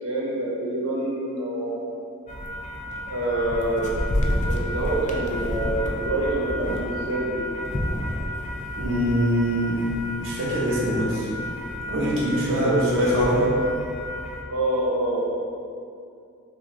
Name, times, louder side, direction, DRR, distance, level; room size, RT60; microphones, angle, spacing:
voice 1, 0.0-1.9 3.1-3.9 4.5-7.4 12.6-12.8 14.5-15.2, right 1 dB, 85° right, -5 dB, 1.0 m, -26 dB
sound 1, 2.3-14.4, left 1 dB, 35° left, 0.4 m, -30 dB
voice 2, 8.8-9.8 10.2-11.3 11.9-13.5, equal, 60° right, -7 dB, 0.8 m, -23 dB
7.0 x 2.5 x 2.6 m, 2.5 s
head